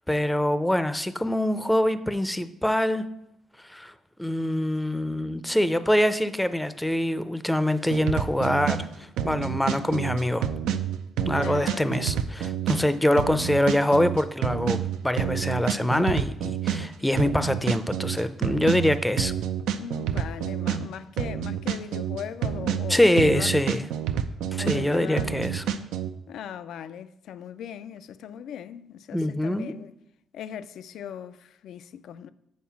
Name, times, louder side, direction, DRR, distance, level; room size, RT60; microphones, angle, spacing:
voice 1, 0.1-3.1 3.7-3.9 4.2-10.5 11.3-19.3 22.9-23.9 24.5-25.6 29.1-29.7, left 1 dB, 5° left, 0.5 m, -24 dB
sound 1, 7.9-26.1, right 9 dB, 90° right, 0.4 m, -28 dB
voice 2, 11.2-11.9 19.8-23.7 24.6-25.4 26.3-29.9 30.3-32.3, left 9 dB, 75° left, 0.3 m, -39 dB
7.4 x 4.2 x 5.8 m
cardioid pair, 90°, 0 cm